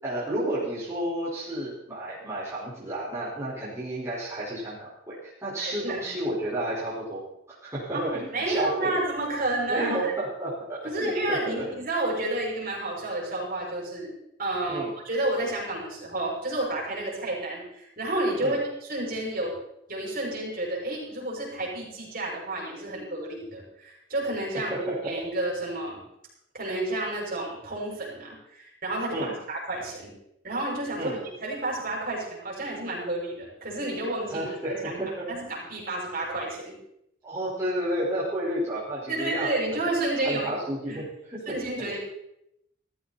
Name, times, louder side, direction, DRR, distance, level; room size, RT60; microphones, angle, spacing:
voice 1, 0.0-7.2 7.6-9.0 9.7-11.7 14.7-14.9 18.4-18.6 24.7-25.1 29.1-29.3 30.9-31.2 34.3-35.3 37.2-39.9 40.2-41.4 41.8-42.0, right 1 dB, 15° right, -9 dB, 4.7 m, -31 dB
voice 2, 5.6-6.0 7.9-10.2 10.8-14.1 14.4-19.5 19.9-26.0 26.5-30.1 30.4-31.1 31.4-34.5 34.8-35.0 35.3-36.7 39.1-40.5 40.9-41.0 41.5-42.0, right 2 dB, 45° right, -3 dB, 6.1 m, -30 dB
17.0 x 14.0 x 4.2 m, 0.80 s
head